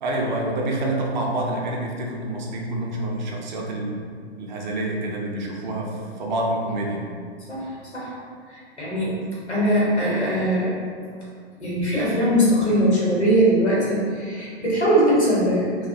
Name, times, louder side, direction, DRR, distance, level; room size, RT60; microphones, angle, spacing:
voice 1, 0.0-4.0 4.4-7.1, right 1 dB, 45° right, -1 dB, 0.5 m, -27 dB
voice 2, 7.5-8.1 8.5-9.2 9.5-10.8 11.6-15.9, equal, 90° left, -7 dB, 0.9 m, -21 dB
2.4 x 2.1 x 2.6 m, 2.1 s
figure-of-eight pair, 110°, 33 cm